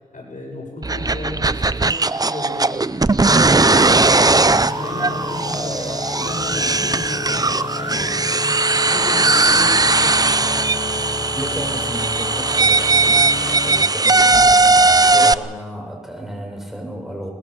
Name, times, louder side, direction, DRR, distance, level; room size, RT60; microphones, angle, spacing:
voice 1, 0.1-4.2 4.6-10.8, left 2 dB, 85° left, -1 dB, 7.6 m, -34 dB
sound 1, 0.8-15.3, right 3 dB, 30° right, 0.6 m, -17 dB
sound 2, 3.3-13.9, left 3 dB, 45° left, 1.2 m, -31 dB
voice 2, 11.3-17.3, equal, 5° right, 1 dB, 6.6 m, -32 dB
21.5 x 21.5 x 7.0 m, 1.2 s
wide cardioid pair, 60°, 13 cm